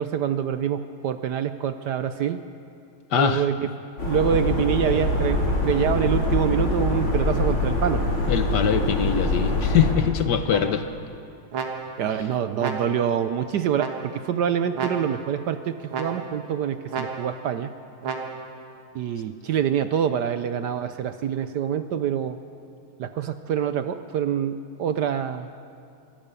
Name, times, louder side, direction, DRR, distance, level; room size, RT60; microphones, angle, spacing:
voice 1, 0.0-2.4 3.1-3.7 4.0-8.0 12.0-17.7 18.9-22.4 23.0-25.5, right 9 dB, 65° right, 10 dB, 1.1 m, -26 dB
voice 2, 3.1-3.5 8.3-10.9, left 8 dB, 60° left, 9 dB, 1.3 m, -22 dB
sound 1, 4.0-9.9, left 2 dB, 85° left, 4.7 m, -24 dB
sound 2, 10.5-11.1 11.5-12.2 12.6-13.2 13.8-14.4 14.7-15.4 15.9-16.5 16.9-17.5 18.0-18.6, right 5 dB, 85° right, 2.3 m, -33 dB
23.0 x 18.0 x 6.9 m, 2.5 s
omnidirectional pair, 2.3 m